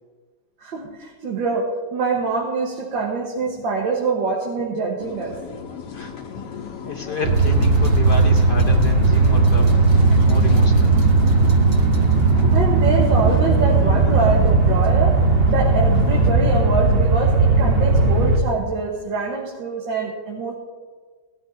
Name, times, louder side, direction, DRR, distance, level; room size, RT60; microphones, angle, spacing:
voice 1, 0.6-5.4 12.5-15.2 15.5-20.5, right 4 dB, 75° right, -2 dB, 2.0 m, -24 dB
sound 1, 5.0-16.3, left 6 dB, 65° left, 1.6 m, -33 dB
voice 2, 6.9-9.7 10.1-10.9, left 4 dB, 40° left, 2 dB, 0.8 m, -30 dB
sound 2, 7.2-18.4, right 3 dB, 45° right, 0.8 m, -16 dB
18.0 x 12.5 x 2.7 m, 1.5 s
omnidirectional pair, 2.1 m